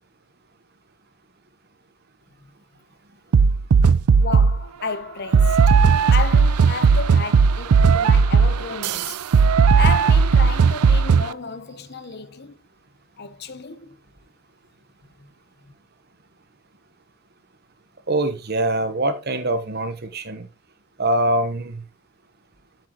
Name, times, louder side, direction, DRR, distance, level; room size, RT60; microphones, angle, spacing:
sound 1, 3.3-4.6 5.3-11.3, right 5 dB, 90° right, 0.4 m, -16 dB
voice 1, 4.2-5.8 6.1-9.2 9.8-12.6 13.2-14.0 15.2-15.3 15.6-15.7, left 4 dB, 45° left, 0.8 m, -32 dB
voice 2, 18.1-20.5 21.0-21.8, right 1 dB, 45° right, 1.0 m, -23 dB
7.6 x 7.5 x 3.0 m
head